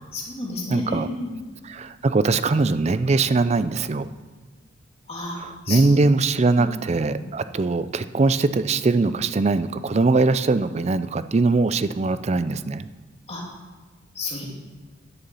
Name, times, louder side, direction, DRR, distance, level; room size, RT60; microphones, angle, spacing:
voice 1, 0.1-1.3 5.1-5.4 5.6-6.0 6.6-6.7 7.1-7.2 13.3-13.4 14.1-14.5, left 2 dB, 30° left, -3 dB, 2.6 m, -31 dB
voice 2, 0.7-1.1 1.7-4.1 5.4-12.9, right 3 dB, 35° right, 13 dB, 0.4 m, -21 dB
11.0 x 7.0 x 6.9 m, 1.3 s
head